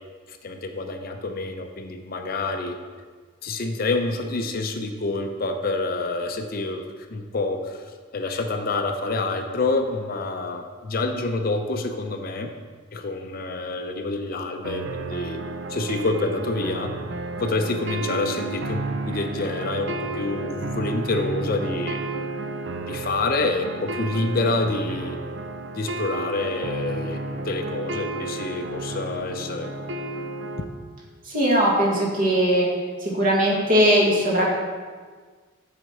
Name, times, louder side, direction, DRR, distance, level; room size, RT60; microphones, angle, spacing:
voice 1, 0.3-2.8 3.4-6.8 7.1-7.8 8.1-12.5 12.9-15.4 15.7-16.9 17.4-22.0 22.8-25.2 25.7-27.2 27.4-29.7, left 3 dB, 45° left, 5 dB, 0.5 m, -27 dB
sound 1, 14.6-30.6, right 2 dB, 60° right, 0.5 m, -32 dB
voice 2, 31.3-32.7 33.0-34.5, equal, 45° right, -3 dB, 1.7 m, -20 dB
7.6 x 4.3 x 6.5 m, 1.5 s
head